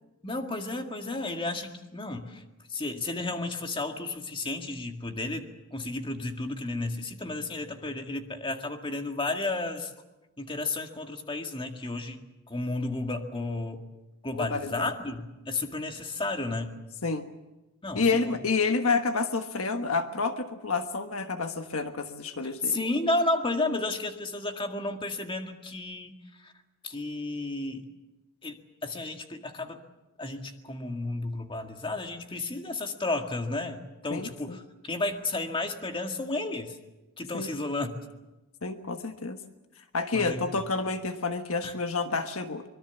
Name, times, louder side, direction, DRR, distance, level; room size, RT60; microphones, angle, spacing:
voice 1, 0.2-2.4 2.7-9.9 10.4-12.2 12.5-13.8 14.2-16.7 17.8-18.4 22.4-26.5 26.8-27.8 28.4-29.8 30.2-36.8 37.2-37.9 40.1-40.4 41.6-41.7, left 2 dB, 25° left, 4 dB, 1.9 m, -32 dB
voice 2, 14.3-14.9 17.0-17.3 17.9-22.8 34.1-34.6 37.3-37.5 38.6-39.4 39.9-42.6, left 4 dB, 70° left, 7 dB, 1.4 m, -29 dB
25.0 x 22.5 x 7.1 m, 1.0 s
head